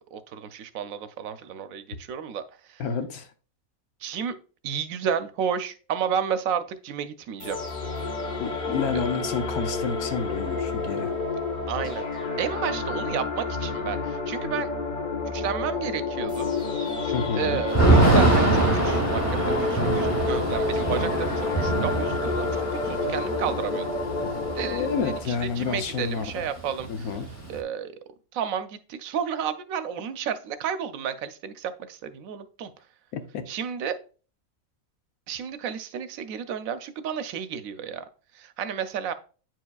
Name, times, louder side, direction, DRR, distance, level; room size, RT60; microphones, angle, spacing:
voice 1, 0.1-2.8 4.0-4.3 4.6-7.6 8.9-9.0 11.7-12.1 12.4-14.7 15.2-16.5 17.0-23.8 24.6-24.9 25.4-27.1 27.5-28.0 28.3-32.7 33.5-33.9 35.3-38.0 38.3-39.1, right 7 dB, 75° right, 1.0 m, -32 dB
voice 2, 2.8-3.3 8.4-11.2 17.1-17.6 24.6-26.5 26.9-27.3 33.1-33.5, left 6 dB, 90° left, 1.3 m, -30 dB
sound 1, 7.4-25.2, left 3 dB, 40° left, 1.0 m, -29 dB
Thunder / Rain, 17.7-25.6 25.9-26.0 26.2-27.6, right 2 dB, 15° left, 0.6 m, -24 dB
9.0 x 4.6 x 2.3 m
omnidirectional pair, 1.5 m